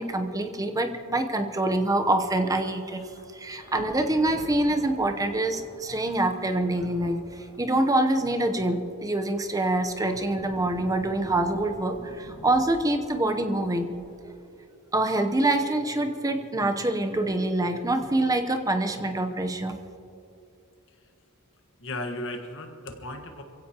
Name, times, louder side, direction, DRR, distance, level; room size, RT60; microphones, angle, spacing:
voice 1, 0.0-3.0 3.3-7.2 7.6-13.9 14.9-19.8, right 1 dB, 15° right, 6 dB, 0.9 m, -25 dB
Thunder / Rain, 2.9-14.2, left 1 dB, 40° left, 2.2 m, -47 dB
voice 2, 21.8-23.4, left 1 dB, 60° left, 5 dB, 1.5 m, -36 dB
27.5 x 16.5 x 3.0 m, 2.6 s
head